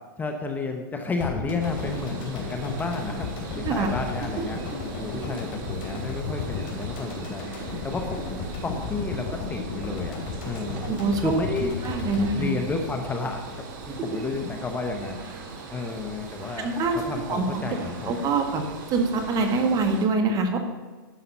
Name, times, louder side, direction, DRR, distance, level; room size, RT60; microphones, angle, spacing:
voice 1, 0.2-3.3 3.6-4.6 5.0-7.4 7.8-8.2 8.6-10.2 10.5-10.9 11.2-11.7 12.3-15.2 15.7-16.7 17.1-18.3, left 3 dB, 15° left, 4 dB, 0.9 m, -31 dB
sound 1, 1.2-13.5 13.8-13.9, left 4 dB, 45° left, 3.5 m, -34 dB
sound 2, 1.6-20.1, right 4 dB, 65° right, 2.0 m, -40 dB
voice 2, 10.8-11.4 11.8-12.5 16.6-17.0 17.3-17.6 18.1-18.6 18.9-20.6, right 3 dB, 30° right, 5 dB, 1.5 m, -24 dB
11.5 x 5.7 x 5.4 m, 1.3 s
hypercardioid pair, 125°, 12 cm